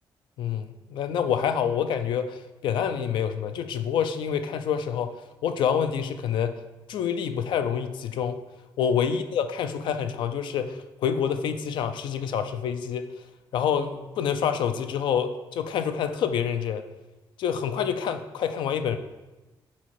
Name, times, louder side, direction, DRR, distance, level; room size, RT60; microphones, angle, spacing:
voice 1, 0.4-5.1 5.4-6.6 6.9-8.4 8.8-13.1 13.5-16.8 17.4-19.0, left 8 dB, 85° left, 9 dB, 0.4 m, -27 dB
4.8 x 4.3 x 4.6 m, 1.1 s
cardioid pair, 135°, 8 cm